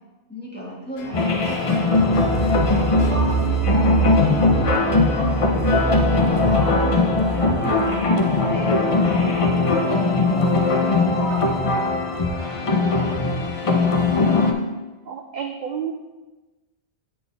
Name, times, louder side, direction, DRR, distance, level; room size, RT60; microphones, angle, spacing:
voice 1, 0.3-1.9 2.4-3.6 4.2-5.4 5.8-8.0 8.4-10.5 10.8-11.6 12.6-14.1, left 1 dB, 10° left, -6 dB, 1.5 m, -34 dB
sound 1, 0.9-14.1, left 2 dB, 70° left, 1.2 m, -42 dB
sound 2, 1.1-14.5, left 3 dB, 35° left, 0.6 m, -20 dB
sound 3, 1.8-8.4, right 5 dB, 35° right, 0.8 m, -25 dB
voice 2, 15.1-15.9, right 8 dB, 60° right, 4 dB, 0.5 m, -30 dB
8.8 x 4.4 x 3.4 m, 1.2 s
omnidirectional pair, 1.2 m